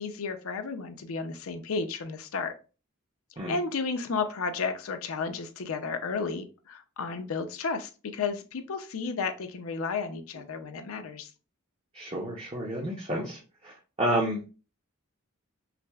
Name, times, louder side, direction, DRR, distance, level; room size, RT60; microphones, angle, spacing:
voice 1, 0.0-2.5 3.5-11.3, left 4 dB, 80° left, 8 dB, 0.5 m, -33 dB
voice 2, 11.9-13.4 13.6-14.4, right 1 dB, 30° right, -2 dB, 0.6 m, -30 dB
5.7 x 2.0 x 2.3 m, 0.33 s
head